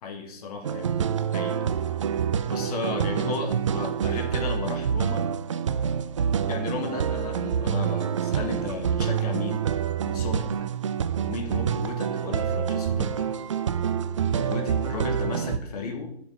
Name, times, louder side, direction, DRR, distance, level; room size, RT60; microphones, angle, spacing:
voice 1, 0.0-0.9 1.3-1.6 2.5-5.3 6.5-9.6 10.0-10.5 11.2-13.1 14.3-16.2, left 4 dB, 35° left, 4 dB, 1.9 m, -34 dB
sound 1, 0.6-15.6, right 8 dB, 30° right, 0.5 m, -27 dB
9.8 x 7.6 x 5.7 m, 0.67 s
figure-of-eight pair, 135°, 32 cm